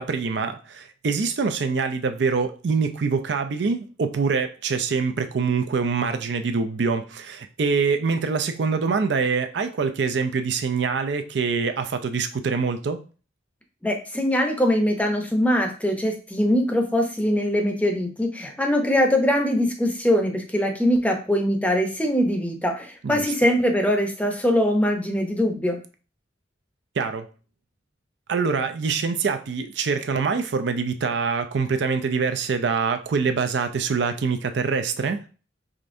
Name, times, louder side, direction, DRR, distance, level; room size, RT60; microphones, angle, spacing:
voice 1, 0.0-13.0 23.0-23.2 27.0-27.3 28.3-35.2, right 5 dB, 65° right, 0.4 m, -25 dB
voice 2, 13.8-25.8, equal, 10° left, 0.6 m, -22 dB
5.1 x 3.2 x 2.6 m
head